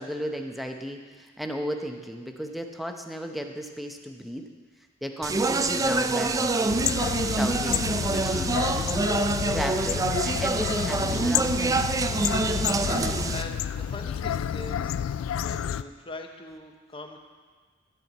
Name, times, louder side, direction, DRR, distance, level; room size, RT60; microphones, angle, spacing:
voice 1, 0.0-4.5 5.0-6.8 7.3-7.8 8.1-8.9 9.5-11.8, equal, ahead, 3 dB, 0.7 m, -34 dB
Speech, 5.2-13.4, right 3 dB, 15° right, 0.3 m, -26 dB
sound 1, 6.7-15.8, left 9 dB, 80° left, 0.3 m, -30 dB
voice 2, 13.1-15.0 15.4-17.2, left 2 dB, 25° left, 4 dB, 0.9 m, -41 dB
13.5 x 4.5 x 8.1 m, 1.5 s
head